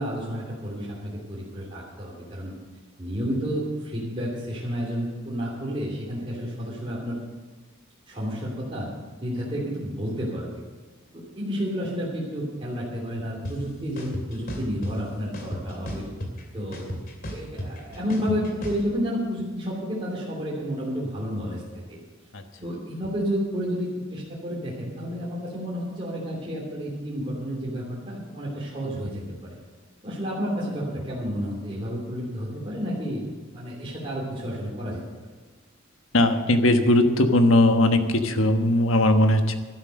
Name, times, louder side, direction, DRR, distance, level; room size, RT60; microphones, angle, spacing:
voice 1, 0.0-2.5 3.0-7.2 8.1-8.9 9.2-10.5 11.1-16.0 16.5-16.9 17.3-21.6 21.9-22.0 22.6-29.5 30.0-35.0, equal, 25° right, -5 dB, 3.0 m, -31 dB
sound 1, 13.4-13.5 14.0-14.9 15.3-16.4 16.7-18.8, equal, 45° left, 2.6 m, -33 dB
voice 2, 36.1-39.5, left 1 dB, 85° left, 6 dB, 1.3 m, -19 dB
12.0 x 11.5 x 6.6 m, 1.4 s
head